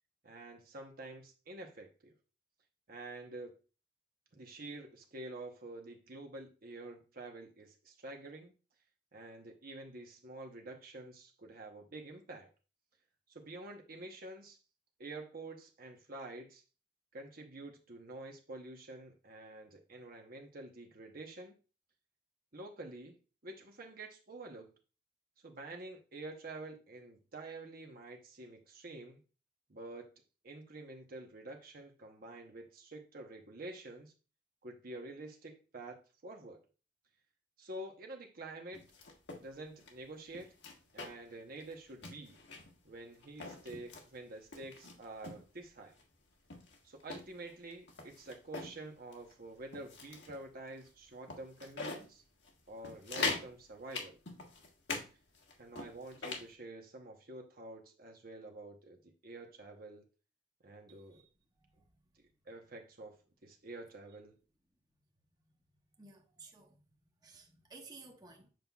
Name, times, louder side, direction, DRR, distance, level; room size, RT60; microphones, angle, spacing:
voice 1, 0.2-2.1 2.9-3.5 4.3-8.5 9.1-12.5 13.3-14.6 15.0-16.6 17.1-21.6 22.5-23.2 23.4-24.7 25.4-29.2 29.7-30.1 30.4-34.1 34.6-36.6 37.6-38.8 39.4-40.5 40.9-42.4 42.8-46.0 46.8-52.2 52.7-54.2 55.6-60.0 60.6-61.2 62.2-64.3, right 2 dB, 55° right, 0.9 m, -48 dB
sound 1, 38.7-39.4 39.8-39.9 40.3-41.3 41.6-41.7 42.0-42.8 43.2-44.1 44.5-45.4 46.0-46.1 46.5-48.8 49.1-49.3 49.7-50.4 50.8-50.9 51.3-52.1 52.4-52.5 52.8-53.5 53.9-55.1 55.3-56.5, left 3 dB, 70° left, 1.5 m, -42 dB
voice 2, 60.9-61.9 65.4-65.5 66.0-66.8 67.2-68.5, right 3 dB, 20° right, 1.0 m, -56 dB
7.7 x 5.4 x 2.3 m
head